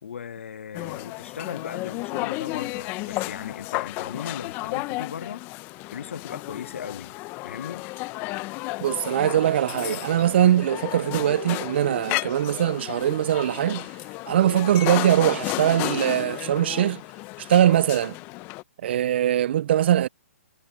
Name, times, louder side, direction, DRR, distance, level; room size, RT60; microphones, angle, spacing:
voice 1, 0.0-5.4 5.9-7.1 7.4-7.9, left 8 dB, 65° left, 1.4 m, -37 dB
sound 1, 0.7-18.6, left 23 dB, 25° left, 0.8 m, -33 dB
voice 2, 8.8-13.9 14.3-17.0 17.4-18.2 18.8-20.1, right 11 dB, 50° right, 0.3 m, -21 dB
hypercardioid pair, 140°, 7 cm